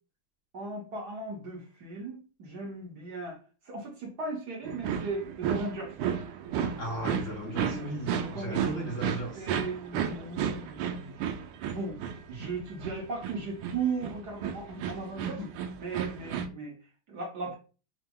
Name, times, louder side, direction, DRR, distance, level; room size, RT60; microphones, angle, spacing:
voice 1, 0.5-3.4 3.6-5.9 7.6-8.6 9.3-11.3 11.7-12.0 12.3-15.4 15.8-16.8 17.1-17.6, right 3 dB, 55° right, 1.5 m, -37 dB
sound 1, 4.6-16.5, right 8 dB, 90° right, 1.5 m, -33 dB
voice 2, 6.8-9.5 15.2-15.5, right 1 dB, 50° left, 1.0 m, -36 dB
4.9 x 2.1 x 3.5 m
omnidirectional pair, 2.3 m